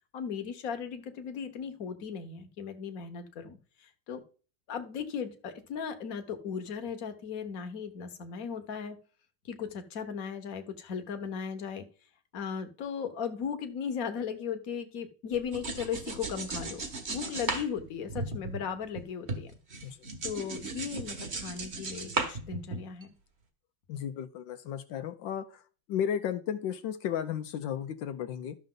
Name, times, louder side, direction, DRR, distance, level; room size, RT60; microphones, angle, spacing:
voice 1, 0.1-4.2 4.7-9.0 9.4-11.9 12.3-16.8 17.1-19.5 19.9-20.0 20.2-23.1, left 7 dB, 50° left, 7 dB, 1.5 m, -37 dB
sound 1, 15.3-19.0 19.3-23.0, right 3 dB, 40° right, 1.5 m, -36 dB
voice 2, 23.9-25.5 25.9-28.6, left 9 dB, 80° left, 9 dB, 1.4 m, -34 dB
12.5 x 6.6 x 3.8 m, 0.38 s
omnidirectional pair, 2.0 m